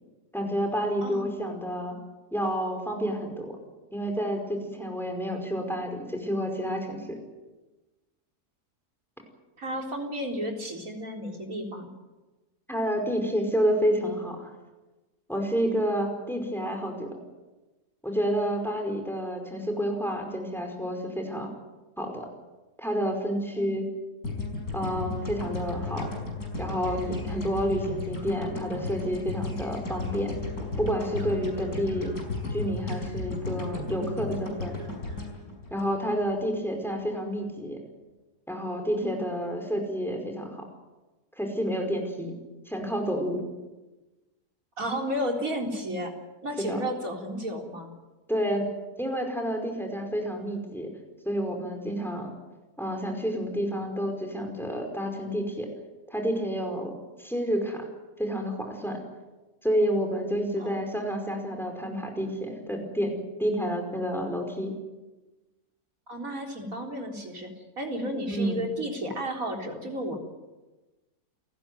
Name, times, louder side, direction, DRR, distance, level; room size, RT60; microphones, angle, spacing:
voice 1, 0.3-2.0 2.3-3.6 3.9-7.2 12.7-14.5 15.3-17.2 18.0-21.5 22.0-22.3 22.8-23.8 24.7-26.1 26.6-30.3 30.8-32.1 32.5-34.7 35.7-37.8 38.5-40.7 41.4-42.4 42.6-43.4 46.6-46.9 48.3-48.7 49.0-50.9 51.2-52.3 52.8-55.7 56.1-56.9 57.2-57.9 58.2-59.0 59.6-64.7 68.3-68.6, equal, ahead, 4 dB, 5.1 m, -29 dB
voice 2, 9.6-11.9 23.6-23.8 39.0-39.2 44.8-46.1 46.4-47.9 60.6-60.8 66.1-67.5 67.8-70.2, equal, 55° right, 2 dB, 4.4 m, -32 dB
sound 1, 24.2-36.5, left 3 dB, 70° left, 5.8 m, -34 dB
30.0 x 15.5 x 9.3 m, 1.2 s
omnidirectional pair, 1.7 m